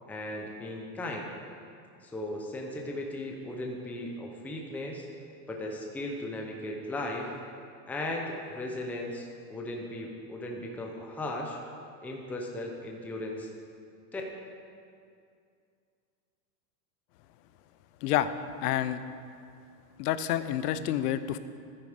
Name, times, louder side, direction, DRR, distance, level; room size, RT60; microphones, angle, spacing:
voice 1, 0.1-1.3 2.0-5.1 5.5-7.3 7.9-11.6 12.0-13.5 14.1-14.2, left 1 dB, 5° left, 0 dB, 0.7 m, -37 dB
voice 2, 18.0-18.3 18.6-19.0 20.0-21.4, left 12 dB, 65° left, 13 dB, 0.8 m, -28 dB
13.0 x 9.7 x 5.1 m, 2.4 s
supercardioid pair, 155°, 49 cm